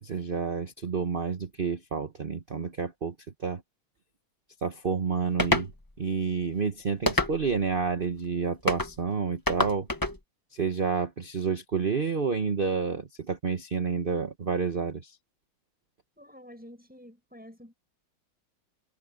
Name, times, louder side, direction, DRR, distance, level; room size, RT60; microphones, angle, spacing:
voice 1, 0.0-3.1 3.4-3.6 4.6-5.7 6.0-9.9 10.5-15.2, right 5 dB, 35° right, 1.0 m, -29 dB
sound 1, 5.4-5.7 7.1-7.6 8.7-8.9 9.5-10.2, left 2 dB, 10° left, 1.2 m, -26 dB
voice 2, 16.2-17.7, equal, 5° right, 7.4 m, -49 dB
omnidirectional pair, 2.2 m